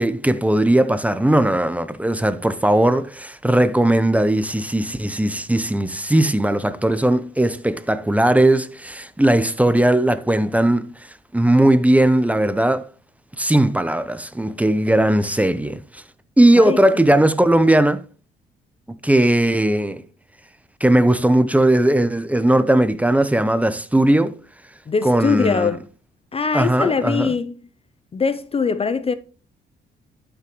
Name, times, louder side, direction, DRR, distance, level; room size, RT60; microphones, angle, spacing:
voice 1, 0.0-10.9 11.3-12.8 13.4-16.0 16.4-18.0 19.0-20.0 20.8-24.4 25.0-25.7 26.5-27.3, right 1 dB, 5° right, 0.7 m, -18 dB
voice 2, 24.9-25.8 26.3-27.5 28.1-29.1, left 5 dB, 30° left, 0.5 m, -21 dB
12.0 x 5.9 x 3.1 m
cardioid pair, 90°, 20 cm